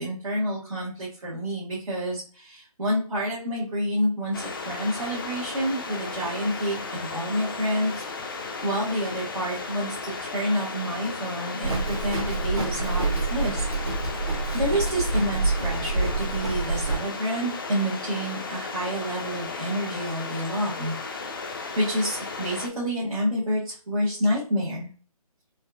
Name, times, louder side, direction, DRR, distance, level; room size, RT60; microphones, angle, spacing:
voice 1, 0.0-8.0 8.6-13.6 14.5-20.9 21.8-24.9, equal, 65° right, -8 dB, 1.4 m, -28 dB
sound 1, 4.3-22.7, left 4 dB, 35° left, 0.4 m, -35 dB
Livestock farm animals working animals, 11.6-17.0, right 3 dB, 45° right, 1.2 m, -27 dB
4.1 x 2.5 x 2.3 m, 0.41 s
figure-of-eight pair, 150°, 19 cm